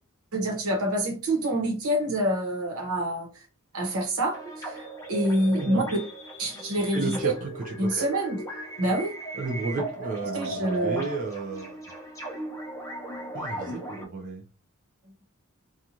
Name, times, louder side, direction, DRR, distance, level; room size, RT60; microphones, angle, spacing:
voice 1, 0.3-3.4 3.7-5.8 6.4-7.3 7.8-8.4 8.8-9.1 10.3-11.1, right 1 dB, 85° right, 1 dB, 1.0 m, -27 dB
sound 1, 4.3-14.0, right 1 dB, 15° left, 0.7 m, -37 dB
voice 2, 5.4-5.9 6.9-8.0 9.3-11.8 13.3-14.4, right 3 dB, 40° right, -1 dB, 0.5 m, -33 dB
2.5 x 2.3 x 2.8 m, 0.34 s
head